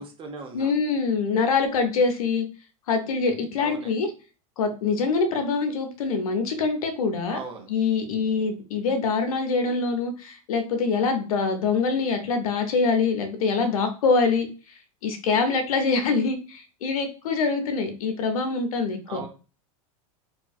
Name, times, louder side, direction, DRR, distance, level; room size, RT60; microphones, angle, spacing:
voice 1, 0.0-0.7 3.6-4.1 7.2-7.7 19.1-19.3, right 4 dB, 30° right, 0.8 m, -39 dB
voice 2, 0.5-2.4 2.9-4.1 4.6-7.4 7.7-19.2, left 4 dB, 85° left, 0.7 m, -24 dB
2.7 x 2.4 x 2.4 m
supercardioid pair, 115°, 18 cm